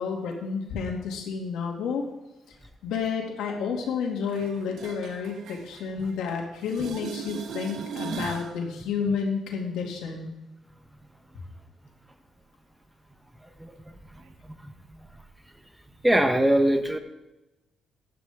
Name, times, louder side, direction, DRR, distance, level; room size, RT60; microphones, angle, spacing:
voice 1, 0.0-2.0 2.8-10.3, left 5 dB, 85° left, 1 dB, 2.5 m, -30 dB
sound 1, 4.3-6.3 6.6-8.5 14.3-14.4, right 5 dB, 75° right, 1.2 m, -38 dB
voice 2, 16.0-17.0, right 1 dB, 10° right, 7 dB, 1.2 m, -21 dB
15.0 x 10.5 x 3.7 m, 0.95 s
cardioid pair, 90°, 0 cm